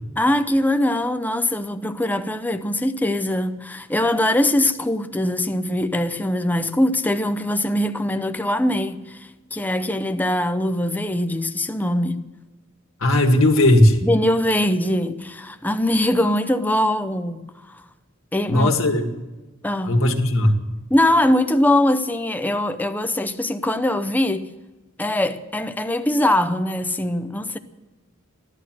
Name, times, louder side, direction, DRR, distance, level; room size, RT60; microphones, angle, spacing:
voice 1, 0.2-12.2 14.0-17.8 18.3-18.7 19.6-20.0 20.9-24.5 25.0-27.6, left 1 dB, 10° left, 0.6 m, -22 dB
voice 2, 13.0-14.0 18.5-19.0 19.8-20.6, left 1 dB, 70° left, 1.9 m, -16 dB
15.5 x 12.0 x 7.6 m
head